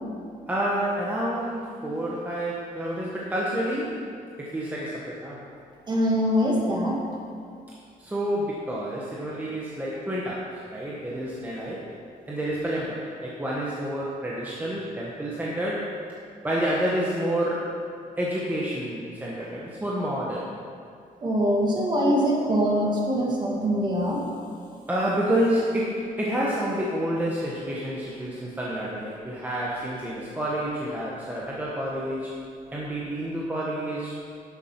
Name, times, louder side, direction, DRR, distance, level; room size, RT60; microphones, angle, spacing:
voice 1, 0.5-4.0 4.4-5.4 8.0-11.9 12.3-15.9 16.4-17.7 18.2-20.4 24.9-32.4 32.7-34.2, right 1 dB, 10° right, -5 dB, 1.1 m, -29 dB
voice 2, 5.9-7.0 21.2-24.2, equal, 30° right, -2 dB, 1.9 m, -23 dB
10.5 x 7.1 x 5.8 m, 2.4 s
cardioid pair, 160°, 16 cm